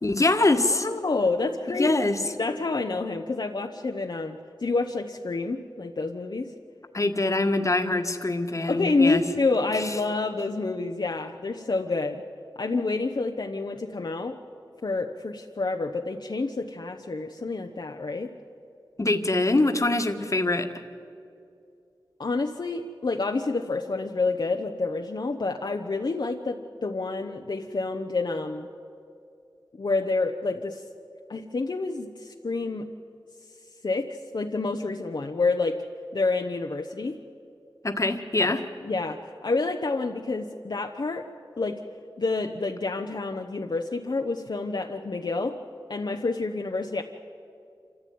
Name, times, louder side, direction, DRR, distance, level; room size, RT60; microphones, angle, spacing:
voice 1, 0.0-0.9 1.8-2.2 6.9-9.2 9.7-10.0 19.0-20.8 37.8-38.6, left 2 dB, 40° left, 6 dB, 1.6 m, -24 dB
voice 2, 0.7-2.0 2.2-6.5 8.7-12.2 12.6-14.4 14.8-18.3 22.2-28.7 29.8-30.8 31.3-32.9 33.8-34.1 34.3-35.8 36.1-37.2 38.4-38.6 38.8-41.3 41.6-41.8 42.2-45.5 45.9-47.0, left 3 dB, 60° left, 3 dB, 1.0 m, -28 dB
26.5 x 15.0 x 9.5 m, 2.5 s
wide cardioid pair, 80°, 9 cm